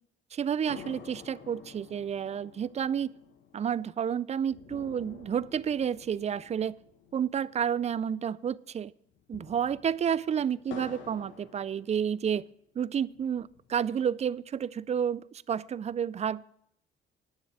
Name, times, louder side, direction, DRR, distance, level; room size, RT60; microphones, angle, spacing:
voice 1, 0.3-3.1 3.5-6.8 7.1-8.9 9.3-12.5 12.8-16.5, right 8 dB, 35° right, 0.4 m, -30 dB
sound 1, 0.7-8.3 8.5-8.6 9.1-12.4 13.0-14.0, left 7 dB, 75° left, 1.3 m, -50 dB
9.5 x 7.0 x 7.5 m
cardioid pair, 90°, 20 cm